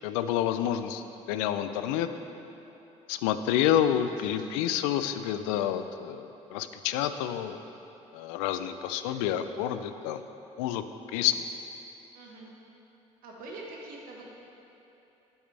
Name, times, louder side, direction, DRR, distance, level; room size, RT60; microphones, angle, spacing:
voice 1, 0.0-2.1 3.1-7.6 8.1-10.2 10.6-10.8 11.1-11.5, left 10 dB, 80° left, 10 dB, 0.4 m, -29 dB
voice 2, 4.0-4.6 12.1-12.5 13.2-14.4, right 2 dB, 70° right, -2 dB, 1.4 m, -45 dB
8.0 x 7.9 x 3.3 m, 3.0 s
hypercardioid pair, 60°, 16 cm